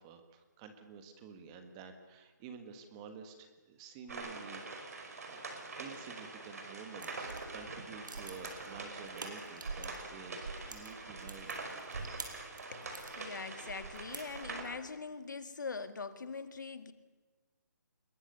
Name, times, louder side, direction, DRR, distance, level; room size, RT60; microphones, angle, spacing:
voice 1, 0.0-5.4 5.8-11.5, right 6 dB, 15° right, 7 dB, 1.5 m, -51 dB
sound 1, 4.1-14.6, right 3 dB, 50° right, 5.2 m, -45 dB
sound 2, 6.9-10.1 10.4-13.2 13.6-14.7, right 3 dB, 80° right, 5.8 m, -45 dB
voice 2, 12.7-16.9, left 4 dB, 70° left, 10 dB, 2.0 m, -43 dB
27.0 x 21.5 x 6.8 m, 1.3 s
hypercardioid pair, 170°, 10 cm